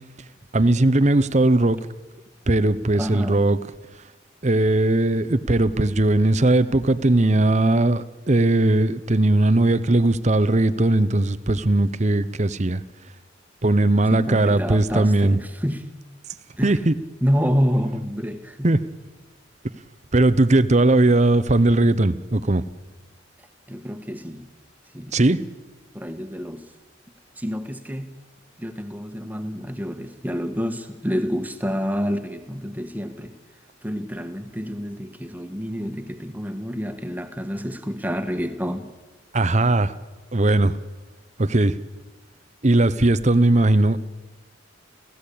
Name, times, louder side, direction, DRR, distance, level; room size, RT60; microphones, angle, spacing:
voice 1, 0.5-1.8 2.5-3.6 4.4-12.8 13.6-15.4 16.6-16.9 18.6-18.8 20.1-22.6 25.1-25.4 39.3-39.9 40.3-40.7 41.4-41.8 42.6-44.1, right 2 dB, 35° right, 14 dB, 0.9 m, -19 dB
voice 2, 2.9-3.4 14.1-15.8 16.6-16.8 17.2-18.7 23.7-24.5 24.9-25.2 25.9-26.6 27.4-28.1 28.6-33.3 33.8-38.9, equal, 10° right, 8 dB, 1.6 m, -28 dB
29.5 x 16.0 x 8.6 m, 1.2 s
head